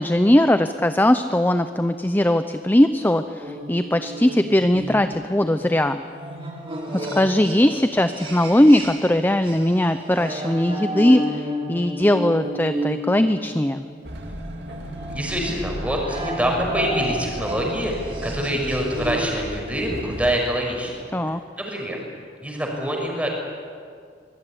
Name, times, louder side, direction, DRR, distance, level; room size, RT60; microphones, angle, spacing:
voice 1, 0.0-6.0 6.9-13.8 21.1-21.4, left 1 dB, 10° left, 9 dB, 0.7 m, -19 dB
sound 1, 3.4-9.2 9.4-19.4, equal, 30° right, 6.2 m, -32 dB
Train, 14.0-20.4, equal, 65° right, 3.1 m, -36 dB
voice 2, 15.1-22.0 22.4-23.3, equal, 10° right, 0 dB, 6.0 m, -26 dB
25.0 x 21.0 x 10.0 m, 2.2 s
head